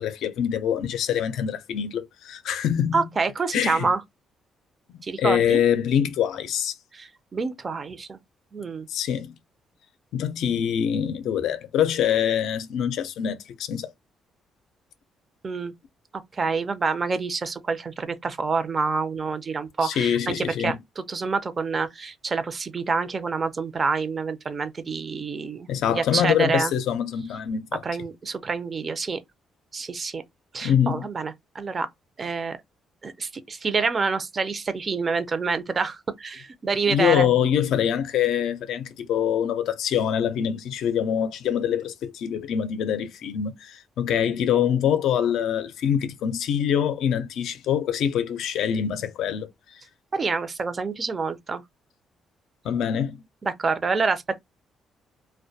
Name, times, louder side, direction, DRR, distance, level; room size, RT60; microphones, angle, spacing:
voice 1, 0.0-3.0 3.5-3.9 4.9-6.7 8.9-9.3 10.1-13.9 19.8-20.8 25.7-27.8 30.6-31.1 36.9-49.5 52.6-53.2, left 9 dB, 80° left, 0.4 m, -24 dB
voice 2, 2.9-4.0 5.0-5.6 6.9-8.2 8.5-8.9 15.4-15.7 16.3-26.7 27.8-29.2 29.7-30.2 30.5-31.9 32.2-32.6 33.0-37.3 50.1-51.6 53.4-54.4, right 4 dB, 35° right, 0.4 m, -27 dB
2.1 x 2.1 x 2.6 m
cardioid pair, 90°, 0 cm